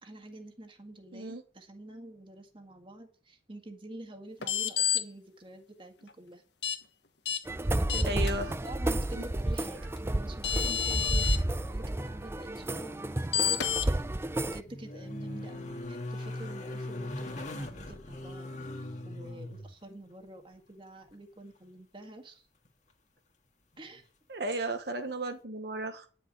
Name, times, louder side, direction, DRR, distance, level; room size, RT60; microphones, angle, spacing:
voice 1, 0.0-6.4 7.6-8.3 8.6-13.7 14.5-18.5 19.0-22.4 23.8-24.0, right 2 dB, 30° right, 5 dB, 1.8 m, -47 dB
voice 2, 1.1-1.4 8.1-8.6 9.2-9.3 24.3-26.1, right 2 dB, 65° right, 6 dB, 1.2 m, -34 dB
sound 1, 4.4-5.0 6.6-6.8 7.3-7.4 7.9-8.3 10.0-10.1 10.4-11.4 13.3-13.9, left 9 dB, 80° left, 1.3 m, -29 dB
sound 2, 7.5-14.6, right 1 dB, 15° right, 0.4 m, -31 dB
sound 3, 9.1-10.0 10.3-11.1 11.3-11.4 13.9-19.8 22.7-22.8, left 1 dB, 45° left, 1.9 m, -41 dB
9.9 x 6.5 x 9.0 m, 0.40 s
head